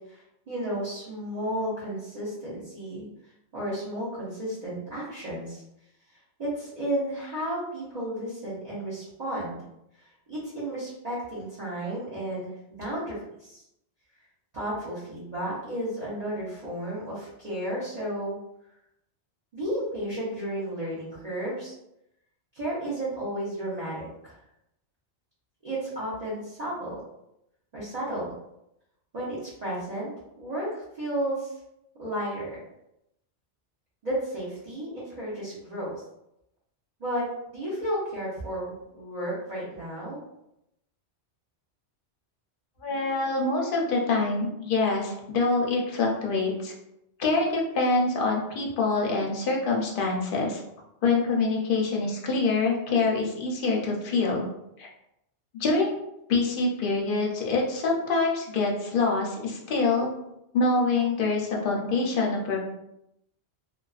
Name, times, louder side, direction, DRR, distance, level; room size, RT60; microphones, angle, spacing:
voice 1, 0.1-3.1 3.5-5.6 6.4-9.6 9.9-12.5 12.8-13.6 14.5-18.4 19.5-21.7 22.5-24.4 25.6-27.0 27.7-28.3 29.1-30.1 30.4-31.6 32.0-32.6 34.0-35.9 37.0-37.2 37.5-40.2, right 1 dB, 40° right, -9 dB, 0.7 m, -33 dB
voice 2, 42.8-46.7 47.2-50.6 51.0-54.5 54.8-54.9 55.5-55.9 56.3-60.1 60.5-62.6, left 3 dB, 60° left, -2 dB, 0.7 m, -25 dB
2.4 x 2.2 x 2.3 m, 0.83 s
omnidirectional pair, 1.2 m